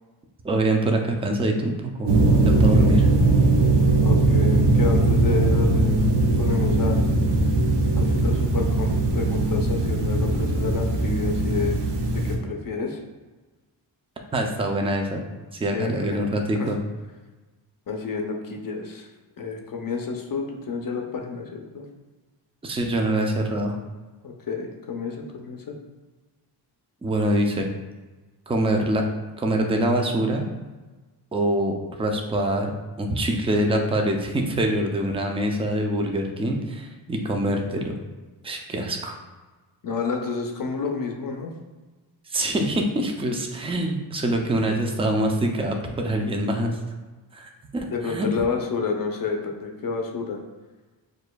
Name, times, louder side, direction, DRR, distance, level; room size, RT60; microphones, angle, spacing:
voice 1, 0.4-2.1 2.4-3.1 14.3-15.2 15.5-16.8 22.6-23.8 27.0-27.7 28.5-29.0 29.4-30.5 31.3-32.7 33.0-38.0 38.4-39.2 42.3-46.8 47.3-48.3, right 1 dB, 15° right, 2 dB, 0.4 m, -24 dB
sound 1, 2.1-12.4, right 2 dB, 65° right, 0.8 m, -20 dB
voice 2, 4.0-7.0 7.9-11.8 12.1-13.0 15.7-16.2 16.6-16.7 17.9-19.1 19.4-21.8 24.2-25.8 39.8-41.5 47.9-50.4, left 4 dB, 50° left, 2 dB, 0.6 m, -30 dB
6.4 x 2.5 x 2.2 m, 1.2 s
cardioid pair, 115°, 45 cm